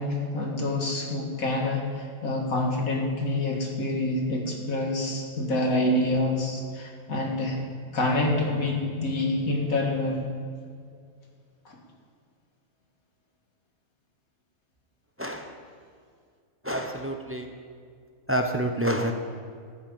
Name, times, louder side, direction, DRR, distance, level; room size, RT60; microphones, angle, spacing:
voice 1, 0.0-7.6 7.9-10.2 11.7-11.8, left 2 dB, 70° left, 0 dB, 2.3 m, -27 dB
voice 2, 15.2-15.5 16.6-17.5 18.3-19.1, right 1 dB, 15° right, 4 dB, 0.6 m, -28 dB
13.5 x 6.2 x 8.8 m, 2.2 s
omnidirectional pair, 1.5 m